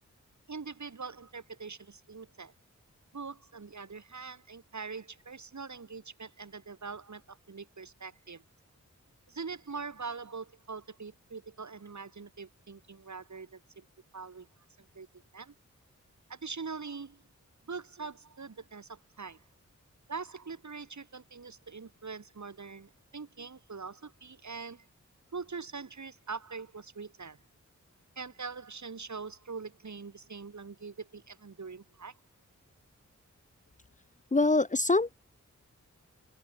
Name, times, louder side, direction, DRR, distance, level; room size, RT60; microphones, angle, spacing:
voice 1, 0.5-2.5 3.1-8.4 9.3-13.8 14.1-14.5 14.9-15.1 15.3-15.5 16.3-17.2 17.7-19.4 20.1-24.9 25.3-27.4 28.1-32.1, right 5 dB, 70° right, 6.7 m, -43 dB
voice 2, 34.3-35.2, left 3 dB, 25° left, 0.7 m, -24 dB
wide cardioid pair, 70°, 30 cm